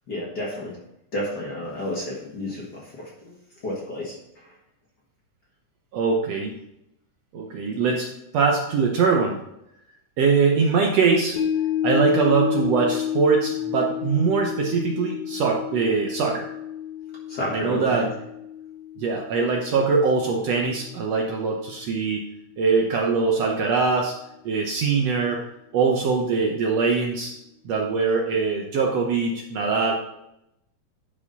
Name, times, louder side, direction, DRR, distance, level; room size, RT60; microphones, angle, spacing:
voice 1, 0.1-0.8 1.1-3.3 3.6-4.6 17.3-18.1, left 1 dB, 40° left, -4 dB, 1.7 m, -31 dB
voice 2, 5.9-6.5 7.3-8.1 8.3-9.4 10.2-11.4 11.8-16.5 17.5-18.1 19.0-22.2 22.6-24.1 24.4-25.4 25.7-27.3 27.6-29.9, right 5 dB, 70° right, 0 dB, 1.7 m, -22 dB
sound 1, 11.4-21.7 22.1-22.2, left 10 dB, 75° left, 2.1 m, -31 dB
10.5 x 4.9 x 4.1 m, 0.82 s
omnidirectional pair, 3.6 m